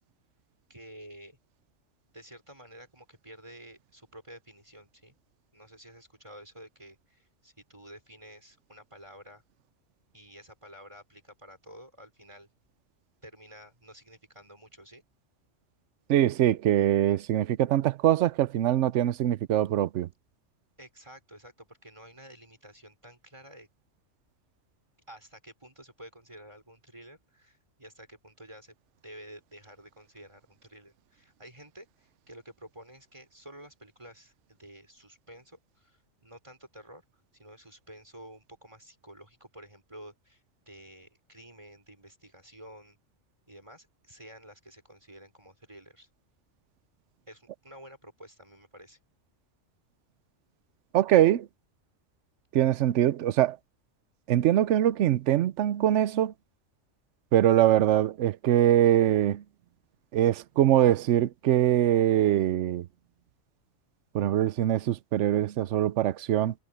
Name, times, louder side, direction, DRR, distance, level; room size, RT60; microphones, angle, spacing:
voice 1, 0.7-1.4 2.1-5.1 5.5-9.4 10.1-12.5 13.2-15.0 20.8-23.7 25.1-28.7 29.0-37.0 37.3-43.0 43.5-46.1 47.3-49.0, right 1 dB, 25° right, 5.0 m, -50 dB
voice 2, 16.1-20.1 50.9-51.5 52.5-53.6 54.3-56.3 57.3-59.4 60.1-62.9 64.1-66.5, right 12 dB, 75° right, 0.9 m, -23 dB
omnidirectional pair, 1.3 m